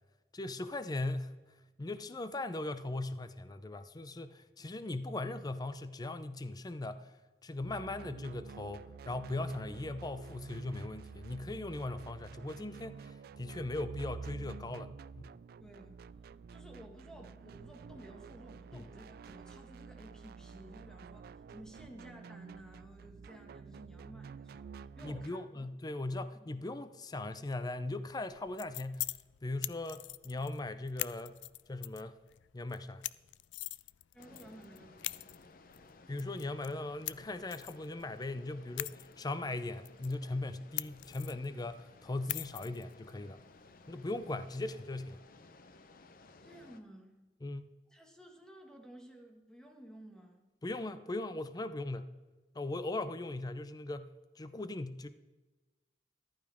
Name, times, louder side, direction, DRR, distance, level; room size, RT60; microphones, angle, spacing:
voice 1, 0.3-1.3 1.8-7.1 7.4-15.2 18.7-18.9 25.0-29.1 29.4-31.4 31.7-32.2 32.5-33.0 36.1-43.4 43.9-45.2 47.4-47.7 50.6-52.1 52.5-55.1, left 2 dB, 20° left, 12 dB, 0.5 m, -39 dB
sound 1, 7.6-25.3, right 5 dB, 60° right, 0.3 m, -49 dB
voice 2, 15.6-16.0 16.5-25.7 26.3-26.5 34.1-35.3 46.4-47.2 47.9-50.4, right 1 dB, 5° left, 2 dB, 1.7 m, -54 dB
sound 2, 28.3-45.2, left 17 dB, 90° left, 0.3 m, -45 dB
sound 3, 34.2-46.8, left 3 dB, 55° left, 0.7 m, -58 dB
14.5 x 11.5 x 3.5 m, 1.2 s
head